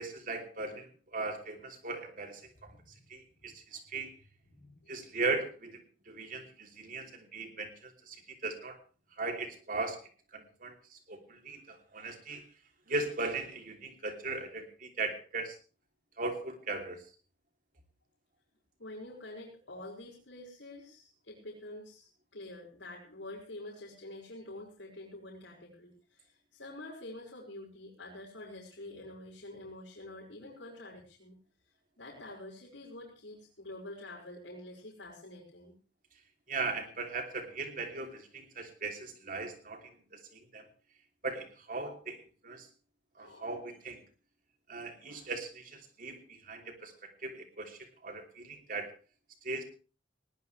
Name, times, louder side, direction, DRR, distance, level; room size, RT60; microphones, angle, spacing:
voice 1, 0.0-2.7 3.1-4.1 4.9-8.8 9.2-10.0 10.3-12.4 12.9-15.6 16.2-17.0 36.5-40.6 41.2-42.2 42.4-42.7 43.2-44.0 44.7-46.9 47.2-48.9 49.4-49.6, right 3 dB, 50° right, 5 dB, 3.2 m, -38 dB
voice 2, 2.6-3.0 3.4-3.5 4.5-4.9 18.8-31.4 32.0-35.7 43.2-43.6 45.1-45.3 46.9-47.0, left 1 dB, 85° left, -5 dB, 5.7 m, -47 dB
20.0 x 17.5 x 3.3 m, 0.36 s
head